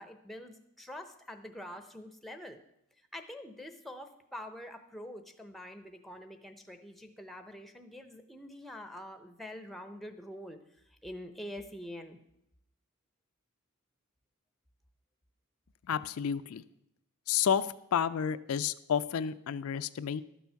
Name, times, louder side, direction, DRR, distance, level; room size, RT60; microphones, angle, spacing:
voice 1, 0.0-2.6 3.1-10.6 10.9-12.2, left 1 dB, ahead, 7 dB, 0.6 m, -45 dB
voice 2, 15.9-16.6 17.3-20.2, left 8 dB, 75° left, 12 dB, 0.4 m, -31 dB
12.0 x 7.0 x 5.7 m, 0.79 s
head